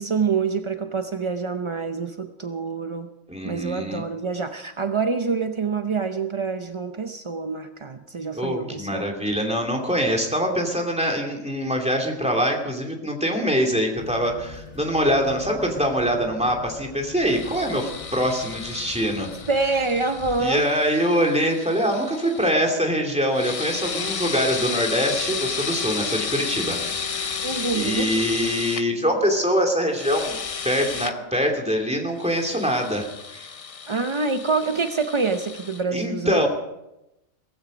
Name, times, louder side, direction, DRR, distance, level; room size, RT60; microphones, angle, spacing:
voice 1, 0.0-3.1 3.4-9.1 19.5-20.6 27.4-28.1 33.9-36.5, right 4 dB, 35° right, 7 dB, 0.4 m, -26 dB
voice 2, 3.3-4.0 8.3-19.3 20.4-26.8 27.0-27.3 27.7-33.5 35.9-36.5, equal, 5° right, 2 dB, 2.7 m, -24 dB
sound 1, 13.9-20.5, left 4 dB, 30° left, 1.7 m, -42 dB
sound 2, 17.3-22.5 23.3-28.8 29.9-31.1 32.2-35.8, left 6 dB, 45° left, 0.4 m, -32 dB
16.5 x 15.5 x 5.1 m, 0.89 s
omnidirectional pair, 1.4 m